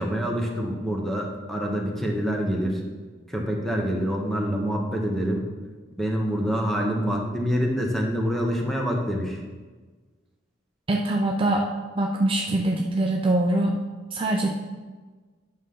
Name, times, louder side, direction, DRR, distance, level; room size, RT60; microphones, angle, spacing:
voice 1, 0.0-2.8 3.3-5.5 6.0-9.4, equal, ahead, 0 dB, 1.1 m, -26 dB
voice 2, 10.9-11.7 11.9-13.7 14.1-14.5, right 1 dB, 30° right, 0 dB, 0.6 m, -23 dB
9.1 x 6.4 x 3.8 m, 1.4 s
head